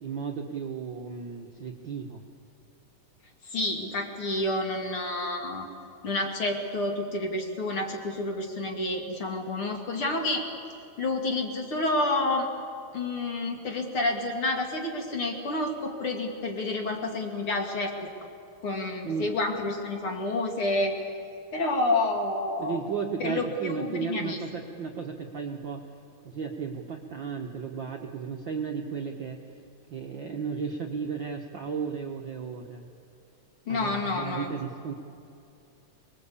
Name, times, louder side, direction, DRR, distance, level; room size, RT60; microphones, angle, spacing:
voice 1, 0.0-2.2 19.0-19.3 22.6-25.8 26.2-29.4 29.9-32.8 33.7-34.9, right 6 dB, 50° right, 1 dB, 1.5 m, -34 dB
voice 2, 3.4-5.7 6.0-10.4 11.0-12.5 12.9-18.1 18.6-21.0 21.5-22.8 23.2-24.4 33.7-34.5, left 2 dB, 45° left, 3 dB, 2.8 m, -29 dB
25.5 x 21.0 x 8.4 m, 2.5 s
omnidirectional pair, 3.6 m